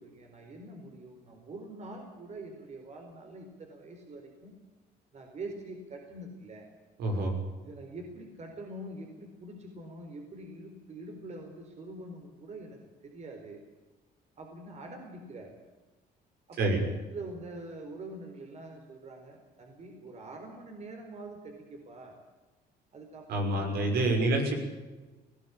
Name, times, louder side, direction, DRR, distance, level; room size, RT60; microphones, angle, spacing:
voice 1, 0.0-4.5 5.1-6.7 7.6-13.6 14.4-15.5 16.5-22.2 22.9-24.4, right 2 dB, 40° right, 3 dB, 4.5 m, -45 dB
voice 2, 7.0-7.3 16.6-16.8 23.3-24.5, right 2 dB, 70° right, 3 dB, 6.3 m, -27 dB
20.0 x 16.0 x 8.8 m, 1.2 s
cardioid pair, 110°, 17 cm